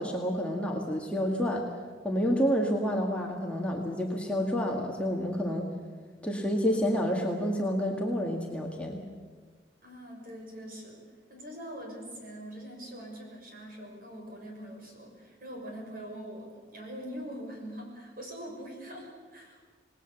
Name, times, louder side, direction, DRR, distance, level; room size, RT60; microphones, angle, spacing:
voice 1, 0.0-1.6 2.0-5.7 6.2-9.0, equal, 5° left, 0 dB, 1.9 m, -29 dB
voice 2, 9.8-11.0 11.3-19.7, equal, 50° right, 1 dB, 6.4 m, -43 dB
27.0 x 19.5 x 7.2 m, 1.5 s
head